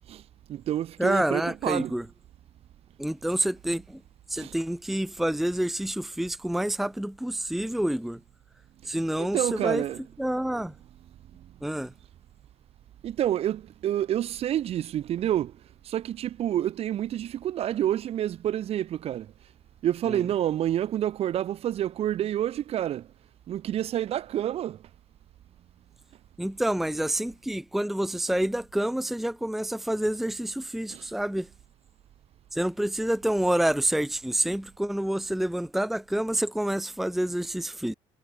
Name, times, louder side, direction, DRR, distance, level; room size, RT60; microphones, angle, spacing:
voice 1, 0.5-1.9 4.4-4.5 8.8-10.0 11.4-11.5 13.0-15.6 15.8-19.3 19.8-23.1 23.5-24.8 30.9-31.1, right 11 dB, 55° right, 1.9 m, -28 dB
voice 2, 1.0-2.1 3.0-4.0 4.3-8.2 8.9-9.8 10.2-10.7 11.6-11.9 20.1-20.2 26.4-31.5 32.5-37.9, right 1 dB, ahead, 0.7 m, -28 dB
cardioid pair, 110°, 12 cm